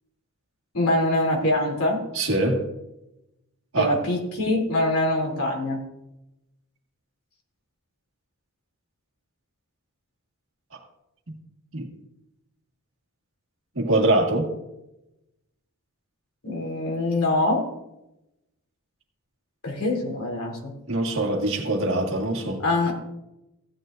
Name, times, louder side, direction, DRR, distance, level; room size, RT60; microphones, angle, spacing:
voice 1, 0.7-2.0 3.8-5.8 16.4-17.6 19.6-20.7 22.6-22.9, left 1 dB, 75° left, 3.1 m, -24 dB
voice 2, 2.1-2.6 3.7-4.0 11.7-11.9 13.8-14.5 20.9-22.6, right 2 dB, 65° right, 1.9 m, -23 dB
15.5 x 9.5 x 2.6 m
head